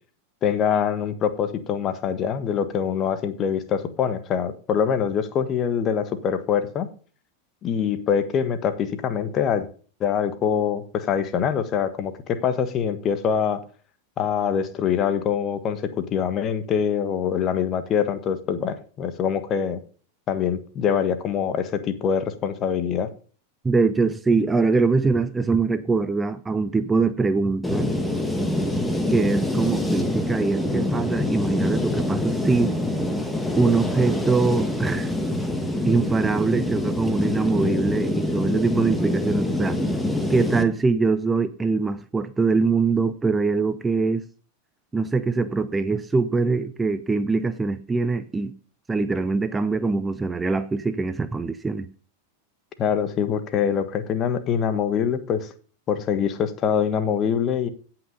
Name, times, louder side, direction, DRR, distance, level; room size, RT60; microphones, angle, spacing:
voice 1, 0.4-6.9 7.6-9.7 10.0-13.6 14.2-19.8 20.3-23.1 52.8-55.5 55.9-57.7, left 7 dB, 30° left, 1.3 m, -24 dB
voice 2, 23.6-27.9 29.1-32.8 33.5-35.2 35.8-39.8 40.3-44.2 44.9-48.5 48.9-51.9, right 4 dB, 10° right, 0.7 m, -23 dB
sound 1, 27.6-40.6, left 1 dB, 5° left, 1.5 m, -25 dB
17.0 x 6.1 x 5.2 m
figure-of-eight pair, 90°, 0 cm